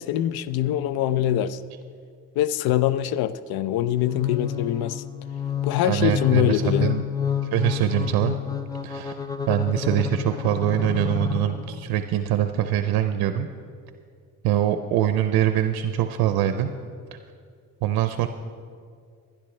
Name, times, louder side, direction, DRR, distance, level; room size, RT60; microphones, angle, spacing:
voice 1, 0.0-1.6 2.4-5.0 5.6-7.0, left 12 dB, 80° left, 16 dB, 0.5 m, -24 dB
sound 1, 4.0-12.0, left 8 dB, 10° left, 0.4 m, -29 dB
voice 2, 5.8-7.0 7.5-8.4 8.8-9.1 9.5-13.5 14.4-16.7 17.8-18.3, right 11 dB, 85° right, 9 dB, 0.6 m, -23 dB
16.5 x 12.0 x 3.2 m, 2.2 s
cardioid pair, 95°, 36 cm